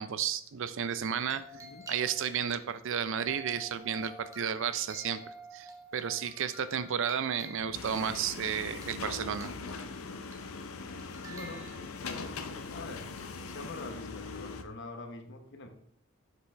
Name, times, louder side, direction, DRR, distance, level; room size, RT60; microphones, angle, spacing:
voice 1, 0.0-1.4 1.9-5.2 5.5-9.5, right 8 dB, 65° right, 13 dB, 0.5 m, -32 dB
sound 1, 1.0-2.4 2.9-5.7 6.2-8.0 8.5-9.9 10.3-10.6 10.9-12.2 13.2-13.5, right 2 dB, 15° right, 1.2 m, -52 dB
sound 2, 1.3-2.3 3.3-4.4 5.0-6.3 6.9-7.0, right 2 dB, 5° left, 0.6 m, -50 dB
voice 2, 1.4-1.9 11.2-11.7 12.7-13.1 13.4-15.7, left 2 dB, 60° left, 5 dB, 1.1 m, -44 dB
sound 3, 7.7-14.6, left 4 dB, 90° left, 0.7 m, -41 dB
7.6 x 6.0 x 3.4 m, 0.65 s
head